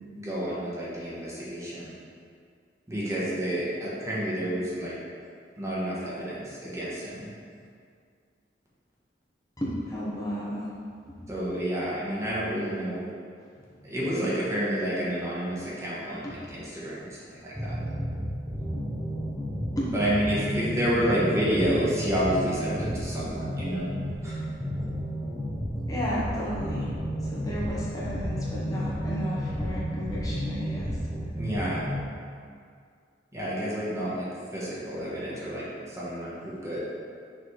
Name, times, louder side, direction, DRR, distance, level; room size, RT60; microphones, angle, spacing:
voice 1, 0.1-1.9 2.9-4.9 5.6-7.3 11.3-13.0 13.8-17.7 19.9-23.9 24.2-24.3 31.4-31.8 33.3-34.3 34.5-36.8, equal, 15° right, -8 dB, 1.3 m, -29 dB
voice 2, 9.6-10.7 11.1-11.2 12.2-12.4 13.9-14.1 16.2-16.3 19.8-20.0 25.9-26.9 27.2-31.0, equal, 20° left, -8 dB, 1.1 m, -33 dB
sound 1, 17.5-32.0, equal, ahead, 0.8 m, -32 dB
6.3 x 3.5 x 4.6 m, 2.2 s
head